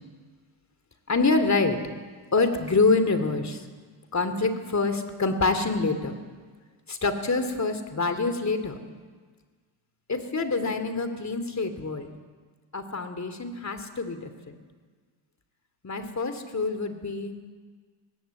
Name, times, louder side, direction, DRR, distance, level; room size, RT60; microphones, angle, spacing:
voice 1, 1.1-1.8 2.3-3.6 4.1-6.1 6.9-8.8 10.1-12.1 12.7-14.6 15.8-17.3, left 3 dB, 35° left, 9 dB, 2.9 m, -26 dB
20.5 x 18.0 x 8.4 m, 1.5 s
cardioid pair, 75°, 47 cm